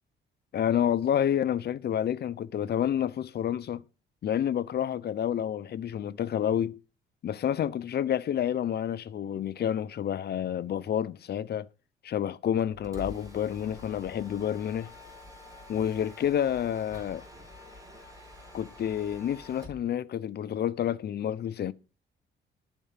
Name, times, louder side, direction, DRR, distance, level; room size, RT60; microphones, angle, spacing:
voice 1, 0.5-3.8 4.2-6.8 7.2-11.7 12.0-14.9 15.7-17.2 18.5-21.7, left 9 dB, 55° left, 0.7 m, -29 dB
Mechanisms, 12.6-19.9, left 2 dB, 15° right, 3.6 m, -47 dB
11.5 x 4.5 x 7.4 m
cardioid pair, 90°, 20 cm